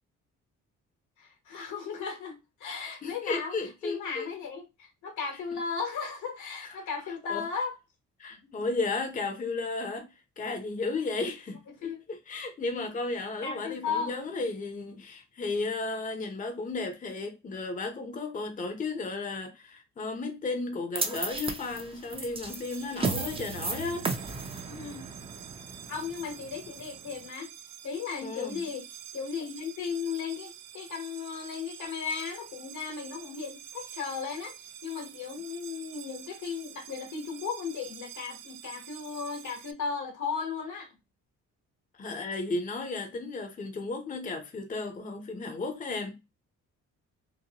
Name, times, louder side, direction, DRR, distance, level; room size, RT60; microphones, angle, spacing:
voice 1, 1.2-3.5 3.8-7.7 8.4-8.7 11.8-12.0 13.4-14.1 24.6-25.1 25.9-27.5 27.8-28.8 29.1-34.5 34.8-40.9, left 6 dB, 80° left, 1.2 m, -36 dB
voice 2, 3.0-4.3 6.6-6.8 7.3-7.5 8.2-24.1 28.2-28.6 42.0-46.2, left 3 dB, 25° left, 0.6 m, -34 dB
sound 1, 21.0-27.2, right 3 dB, 20° right, 0.5 m, -35 dB
sound 2, 22.4-39.7, right 10 dB, 90° right, 0.5 m, -47 dB
2.8 x 2.1 x 2.8 m
cardioid pair, 90°, 30 cm